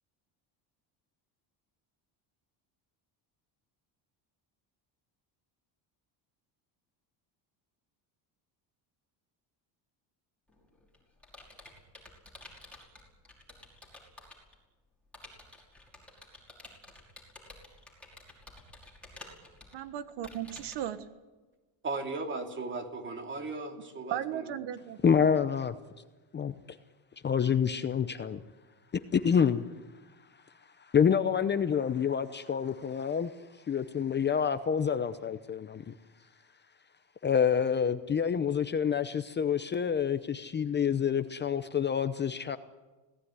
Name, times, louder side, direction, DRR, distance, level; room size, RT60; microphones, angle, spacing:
Computer keyboard, 10.5-14.5 15.1-20.9, left 2 dB, 5° left, 5.5 m, -51 dB
voice 1, 19.7-21.0 24.1-25.0, right 10 dB, 65° right, 1.5 m, -36 dB
voice 2, 21.8-24.4, right 3 dB, 25° right, 3.0 m, -37 dB
voice 3, 25.0-25.7 26.3-26.5 27.2-28.4 29.1-29.6 30.9-33.3 33.7-35.9 37.2-42.6, left 7 dB, 25° left, 0.7 m, -27 dB
26.0 x 18.0 x 9.8 m
cardioid pair, 150°, 45 cm